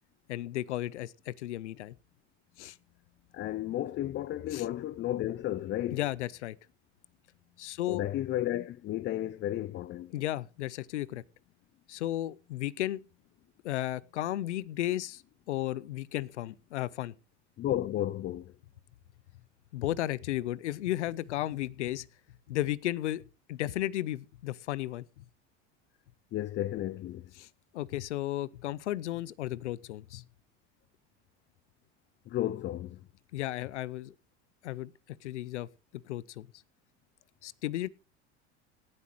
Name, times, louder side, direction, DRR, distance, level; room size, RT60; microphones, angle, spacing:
voice 1, 0.3-1.9 2.6-2.8 4.5-4.6 5.9-6.6 7.6-8.0 10.1-11.2 11.9-13.0 13.6-15.2 15.5-17.1 19.7-22.1 22.5-23.2 23.5-25.2 27.4-27.5 27.7-30.2 33.3-34.1 34.6-34.9 35.2-35.7 36.0-36.5 37.4-37.9, left 14 dB, 90° left, 0.6 m, -34 dB
voice 2, 3.3-6.0 7.9-10.1 17.6-18.5 26.3-27.3 32.3-33.0, left 13 dB, 35° left, 0.5 m, -33 dB
18.0 x 8.6 x 3.1 m
hypercardioid pair, 85°, 34 cm